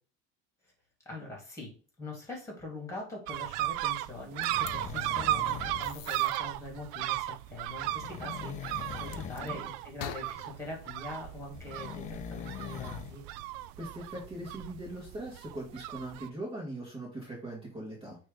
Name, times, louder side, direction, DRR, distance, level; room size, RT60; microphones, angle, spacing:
voice 1, 1.1-1.7 2.0-13.2, left 2 dB, 10° left, -1 dB, 3.4 m, -43 dB
sound 1, 3.3-16.3, right 15 dB, 70° right, 0.5 m, -35 dB
sound 2, 4.4-4.7 5.8-6.4 9.1-9.5 10.0-12.2, left 11 dB, 90° left, 0.9 m, -46 dB
sound 3, 4.5-6.0 7.8-9.5 11.5-13.2 13.6-13.7, left 10 dB, 25° left, 0.4 m, -42 dB
voice 2, 9.2-9.6 13.8-18.2, right 1 dB, 20° right, -4 dB, 2.3 m, -41 dB
9.2 x 3.4 x 3.9 m, 0.37 s
cardioid pair, 145°, 29 cm